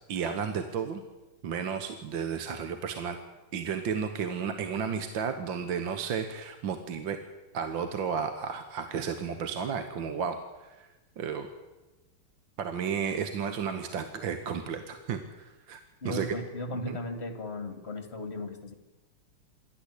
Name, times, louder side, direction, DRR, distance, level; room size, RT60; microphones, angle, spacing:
voice 1, 0.1-1.0 1.4-3.2 3.5-7.2 7.5-10.9 11.2-11.5 12.6-16.3 16.8-17.0, right 6 dB, 65° right, 7 dB, 1.9 m, -33 dB
voice 2, 16.0-18.7, left 2 dB, 30° left, 8 dB, 2.2 m, -36 dB
26.5 x 12.0 x 8.4 m, 1.1 s
omnidirectional pair, 2.3 m